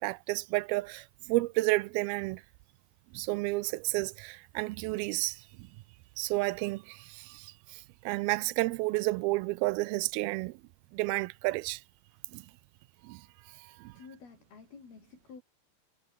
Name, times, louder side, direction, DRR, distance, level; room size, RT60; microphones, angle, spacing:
voice 1, 0.0-2.4 3.1-5.7 6.2-10.6 10.9-11.8 12.3-12.5 13.0-13.3 13.6-14.0, right 22 dB, 85° right, 2.4 m, -31 dB
voice 2, 13.8-15.4, left 5 dB, 75° left, 7.7 m, -51 dB
omnidirectional pair, 4.4 m